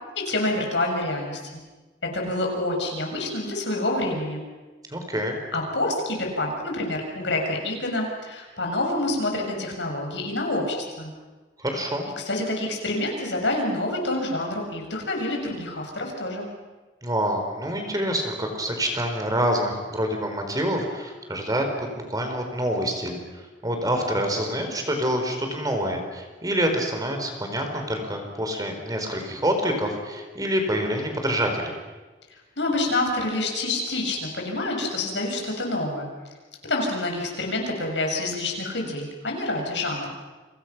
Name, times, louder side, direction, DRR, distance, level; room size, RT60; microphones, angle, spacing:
voice 1, 0.1-1.6 2.0-4.4 5.5-11.1 12.2-16.5 32.3-36.1 36.6-40.1, left 2 dB, 80° left, 1 dB, 6.7 m, -27 dB
voice 2, 4.9-5.4 11.6-12.1 17.0-31.7, equal, 20° right, 4 dB, 4.2 m, -27 dB
30.0 x 25.0 x 6.0 m, 1.3 s
head